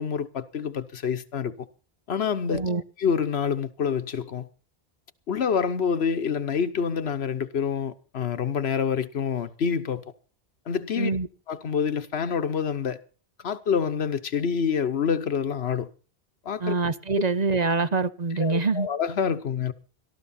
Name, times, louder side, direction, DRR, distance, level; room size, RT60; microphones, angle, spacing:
voice 1, 0.0-1.5 2.1-2.6 3.0-4.5 5.3-10.0 10.7-11.1 11.5-13.0 13.4-15.9 16.4-16.7 18.4-19.7, left 6 dB, 85° left, 1.3 m, -27 dB
voice 2, 2.5-2.8 11.0-11.3 16.6-18.9, right 4 dB, 45° right, 0.9 m, -25 dB
18.0 x 13.0 x 4.3 m
omnidirectional pair, 1.0 m